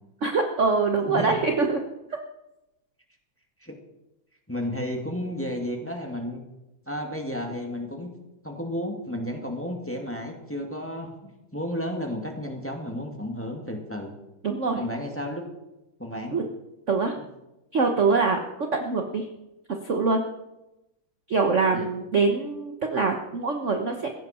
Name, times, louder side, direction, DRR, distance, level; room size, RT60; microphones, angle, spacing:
voice 1, 0.2-1.8 14.4-14.8 16.3-16.4 16.9-17.2 17.7-18.4 18.7-19.3 19.8-20.2 21.3-24.1, right 4 dB, 45° right, 4 dB, 1.2 m, -24 dB
voice 2, 4.5-6.4 6.9-8.1 8.4-14.1 14.8-15.4 16.0-16.4 21.7-21.9, left 1 dB, 5° left, 2 dB, 1.8 m, -32 dB
16.5 x 15.5 x 4.3 m, 0.94 s
omnidirectional pair, 2.3 m